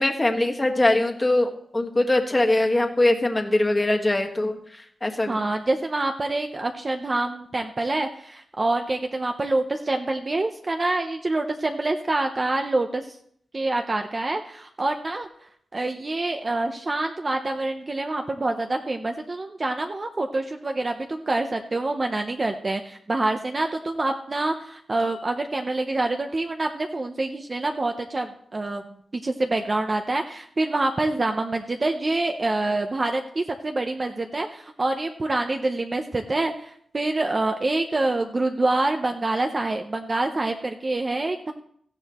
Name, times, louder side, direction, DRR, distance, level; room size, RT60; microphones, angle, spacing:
voice 1, 0.0-5.5, left 2 dB, 20° left, 4 dB, 1.5 m, -22 dB
voice 2, 5.3-13.1 13.5-15.3 15.7-41.5, right 2 dB, 30° right, 5 dB, 0.7 m, -26 dB
16.5 x 15.0 x 3.0 m, 0.66 s
wide cardioid pair, 130°, 0 cm